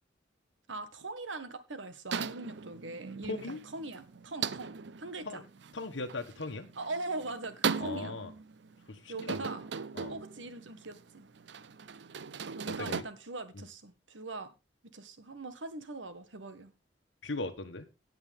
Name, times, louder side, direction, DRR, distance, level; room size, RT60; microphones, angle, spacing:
voice 1, 0.7-5.4 6.8-8.1 9.1-9.6 10.1-11.3 12.5-14.5 14.9-16.7, right 2 dB, 90° right, 1.6 m, -41 dB
sound 1, 2.1-13.0, right 6 dB, 70° right, 0.6 m, -39 dB
voice 2, 3.2-3.6 5.3-5.4 5.7-6.7 7.8-8.3 8.9-9.5 9.9-10.1 12.7-13.1 17.2-17.9, left 3 dB, 85° left, 1.2 m, -38 dB
17.5 x 6.1 x 3.6 m
head